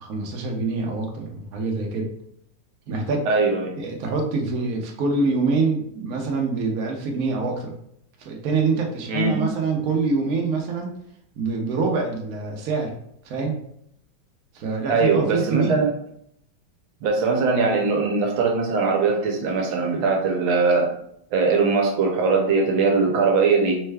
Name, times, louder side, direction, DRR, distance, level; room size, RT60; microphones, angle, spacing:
voice 1, 0.0-2.1 2.9-3.3 3.8-7.7 8.2-10.9 11.4-12.9 13.2-13.6 14.5-15.8, right 4 dB, 60° right, 1 dB, 1.0 m, -25 dB
voice 2, 3.3-3.7 9.1-9.4 14.9-15.9 17.0-20.9 21.3-23.8, right 4 dB, 85° right, 1 dB, 1.5 m, -21 dB
4.4 x 2.2 x 3.3 m, 0.72 s
omnidirectional pair, 2.2 m